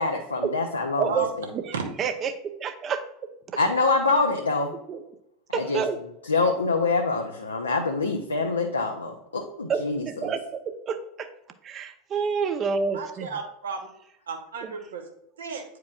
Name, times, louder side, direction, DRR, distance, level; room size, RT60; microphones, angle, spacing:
voice 1, 0.0-1.1 3.6-4.7 5.5-5.8 6.3-10.3, left 3 dB, 85° left, 2 dB, 0.6 m, -25 dB
voice 2, 1.0-3.0 4.9-5.0 5.5-6.0 9.7-11.3 11.6-13.3 14.6-14.7, right 6 dB, 35° right, 8 dB, 0.7 m, -29 dB
voice 3, 12.9-13.9 14.3-15.0 15.4-15.6, right 5 dB, 75° right, 3 dB, 1.1 m, -33 dB
9.3 x 4.6 x 2.4 m, 0.76 s
figure-of-eight pair, 80°, 0 cm